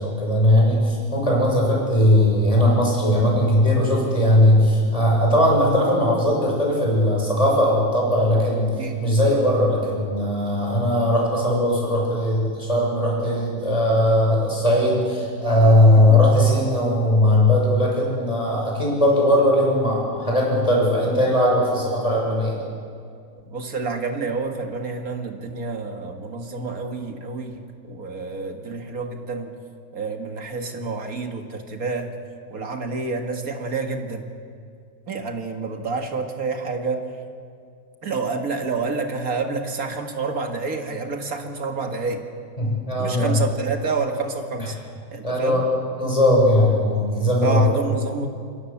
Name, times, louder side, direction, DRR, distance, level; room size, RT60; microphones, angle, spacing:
voice 1, 0.0-8.7 9.0-22.6 42.6-43.4 45.2-45.6 46.0-47.6, left 1 dB, 20° left, -2 dB, 6.9 m, -19 dB
voice 2, 15.9-16.3 23.4-29.6 29.9-32.1 32.5-34.3 35.1-37.1 38.0-42.2 43.0-44.8 45.1-45.6 47.4-48.3, right 4 dB, 50° right, 4 dB, 2.2 m, -28 dB
27.0 x 22.0 x 7.3 m, 2.3 s
omnidirectional pair, 2.0 m